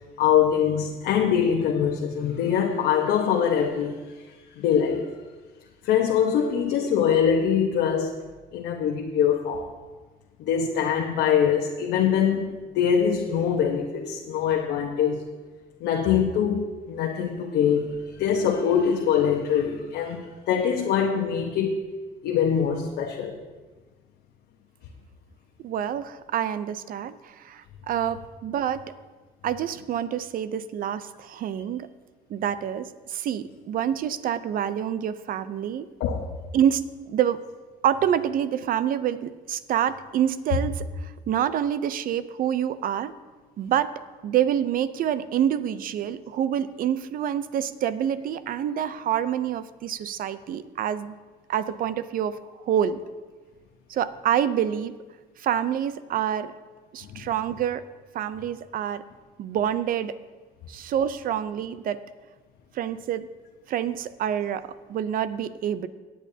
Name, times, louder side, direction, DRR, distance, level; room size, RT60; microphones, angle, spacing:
voice 1, 0.2-5.1 5.8-8.2 8.5-9.7 10.4-15.2 15.8-21.8 22.2-23.4 36.0-36.2 57.0-57.3, left 8 dB, 80° left, 0 dB, 1.0 m, -23 dB
voice 2, 25.6-28.9 29.4-31.9 32.3-35.9 36.5-37.4 37.8-43.1 43.6-43.9 44.2-51.2 51.5-53.0 53.9-54.9 55.4-56.5 56.9-57.8 58.1-59.0 59.4-60.2 60.7-62.0 62.7-63.3 63.7-65.9, right 9 dB, 55° right, 14 dB, 0.6 m, -27 dB
18.0 x 8.6 x 2.8 m, 1.3 s
cardioid pair, 110°, 17 cm